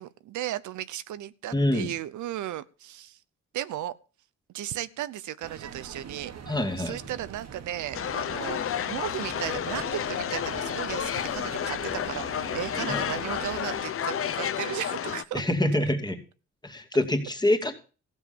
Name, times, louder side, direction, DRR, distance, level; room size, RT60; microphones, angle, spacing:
voice 1, 0.0-3.2 3.5-3.9 4.5-15.4, right 12 dB, 75° right, 0.8 m, -35 dB
voice 2, 1.5-1.9 6.5-7.0 12.9-13.0 15.3-16.2 16.6-17.7, left 1 dB, 15° left, 2.6 m, -25 dB
sound 1, 5.4-13.8, right 7 dB, 60° right, 1.8 m, -44 dB
sound 2, 7.9-15.2, left 9 dB, 45° left, 0.8 m, -31 dB
15.0 x 7.4 x 7.1 m
cardioid pair, 90°, 30 cm